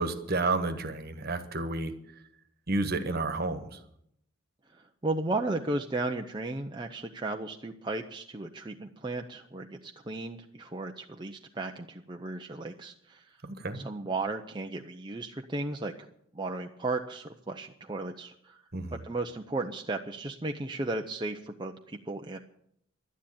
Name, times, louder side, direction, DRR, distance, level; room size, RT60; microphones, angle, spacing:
voice 1, 0.0-1.9 2.7-3.7 13.4-13.8 18.7-19.0, right 3 dB, 50° right, 9 dB, 1.4 m, -30 dB
voice 2, 5.0-13.3 13.7-15.9 16.3-18.6 18.9-22.4, right 2 dB, 20° right, 3 dB, 0.7 m, -35 dB
12.0 x 10.0 x 8.6 m, 0.71 s
head